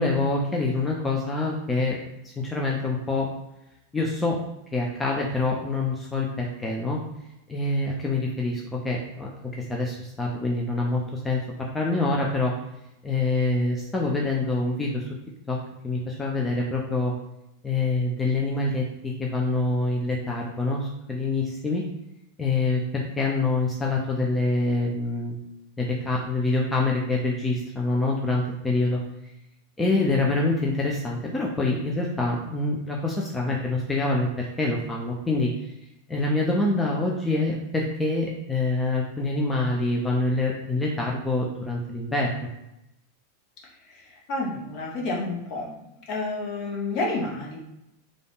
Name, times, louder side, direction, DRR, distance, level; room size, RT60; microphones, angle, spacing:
voice 1, 0.0-2.0 2.2-3.3 3.9-4.4 4.7-7.0 7.5-9.3 9.7-11.4 11.7-12.5 13.0-15.1 15.5-15.6 15.8-17.1 17.6-21.8 22.4-25.4 25.8-29.0 29.8-35.5 36.1-42.5, left 2 dB, 10° left, -2 dB, 0.5 m, -26 dB
voice 2, 44.3-45.7 46.1-47.6, left 2 dB, 40° left, -2 dB, 1.0 m, -29 dB
3.3 x 2.4 x 3.9 m, 0.88 s
figure-of-eight pair, 90°, 0 cm